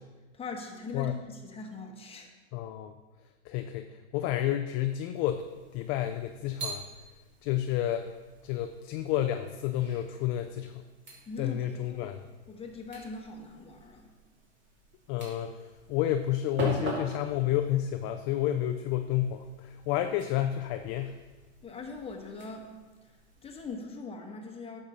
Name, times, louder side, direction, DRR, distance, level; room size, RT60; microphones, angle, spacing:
voice 1, 0.3-2.3 11.3-12.1 12.5-14.1 21.6-24.8, left 3 dB, 15° left, 2 dB, 1.2 m, -41 dB
voice 2, 2.5-2.9 3.5-5.4 5.7-6.9 7.4-8.1 8.4-10.8 11.4-12.3 15.1-21.2, left 12 dB, 35° left, 7 dB, 0.4 m, -30 dB
sound 1, 5.1-23.7, right 2 dB, 30° right, 2.8 m, -45 dB
8.8 x 6.5 x 4.1 m, 1.3 s
hypercardioid pair, 110°, 35 cm